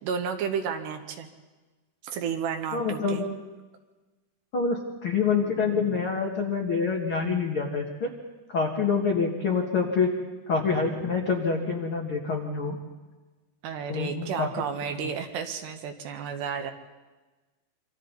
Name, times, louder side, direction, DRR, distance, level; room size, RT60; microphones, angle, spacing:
voice 1, 0.0-1.3 2.1-3.2 13.6-16.7, right 7 dB, 70° right, 5 dB, 3.4 m, -32 dB
voice 2, 2.7-3.3 4.5-8.1 8.5-10.1 10.5-12.8 13.9-14.7, left 5 dB, 60° left, -1 dB, 1.4 m, -26 dB
27.0 x 25.0 x 4.1 m, 1.2 s
omnidirectional pair, 5.3 m